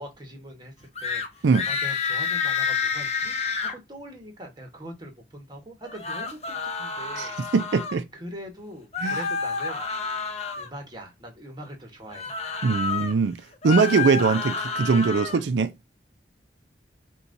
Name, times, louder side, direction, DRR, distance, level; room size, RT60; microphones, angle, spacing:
voice 1, 0.0-7.4 8.1-9.8 10.6-12.3, right 1 dB, 25° right, 1.1 m, -42 dB
sound 1, 1.0-1.3 1.5-3.7 5.8-8.0 8.9-10.7 12.1-13.1 13.5-15.4, left 5 dB, 35° left, 0.7 m, -29 dB
voice 2, 7.1-8.0 9.0-9.2 12.6-13.4 13.6-15.7, right 4 dB, 90° right, 0.4 m, -22 dB
6.9 x 2.3 x 2.6 m
head